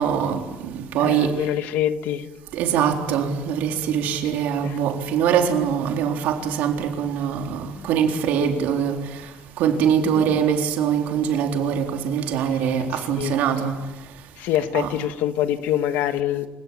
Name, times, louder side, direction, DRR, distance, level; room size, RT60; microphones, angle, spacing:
voice 1, 0.0-1.4 2.5-9.1 9.6-13.8 14.7-14.9, right 8 dB, 70° right, 3.8 m, -23 dB
voice 2, 1.0-2.3 4.6-4.8 10.0-10.3 12.9-13.3 14.4-16.5, left 11 dB, 80° left, 1.7 m, -25 dB
28.0 x 17.5 x 8.9 m
cardioid pair, 165°, 3 cm